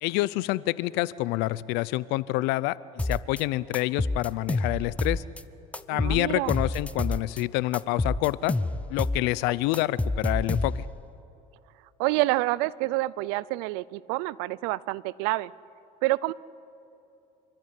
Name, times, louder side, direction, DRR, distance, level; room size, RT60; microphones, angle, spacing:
voice 1, 0.0-5.2 5.9-8.5 8.9-10.7, left 18 dB, 75° left, 20 dB, 0.6 m, -27 dB
sound 1, 3.0-3.4 3.7-5.4 5.7-7.4 7.7-9.2 9.5-11.0, left 2 dB, 5° left, 0.6 m, -28 dB
voice 2, 5.9-6.5 12.0-15.5 16.0-16.3, right 20 dB, 80° right, 22 dB, 0.5 m, -27 dB
27.5 x 13.5 x 9.7 m, 2.8 s
cardioid pair, 115°, 17 cm